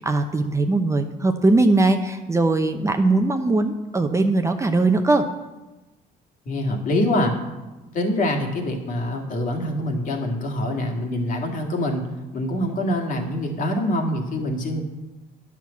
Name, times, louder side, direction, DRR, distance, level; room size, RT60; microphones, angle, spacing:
voice 1, 0.0-5.3, right 2 dB, 15° right, 6 dB, 0.7 m, -20 dB
voice 2, 6.5-7.3 7.9-12.0 12.3-14.8, left 1 dB, 50° left, 2 dB, 2.0 m, -25 dB
9.9 x 6.0 x 7.1 m, 1.1 s
cardioid pair, 110°, 17 cm